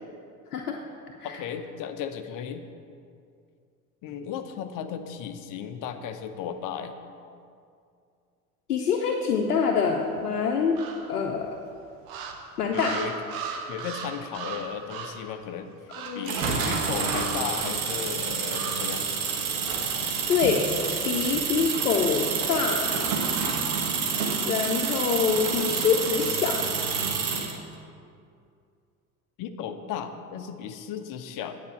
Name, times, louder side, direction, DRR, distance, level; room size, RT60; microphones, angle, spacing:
voice 1, 1.2-2.6 4.0-7.0 12.7-13.1 13.7-15.7 16.1-16.4 16.7-19.1 25.9-26.0 29.4-31.6, left 8 dB, 45° left, 8 dB, 0.8 m, -35 dB
voice 2, 8.7-10.8 11.1-11.5 12.6-12.9 15.9-16.6 20.3-20.6 21.1-22.8 24.4-26.6, left 6 dB, 80° left, 1 dB, 0.8 m, -25 dB
sound 1, 10.8-11.4 12.0-15.3 15.9-16.3 17.0-17.9 18.5-19.0, right 5 dB, 50° right, 1.2 m, -37 dB
sound 2, 16.2-27.6, right 5 dB, 65° right, 1.4 m, -28 dB
9.5 x 5.2 x 7.7 m, 2.4 s
figure-of-eight pair, 65°, 45 cm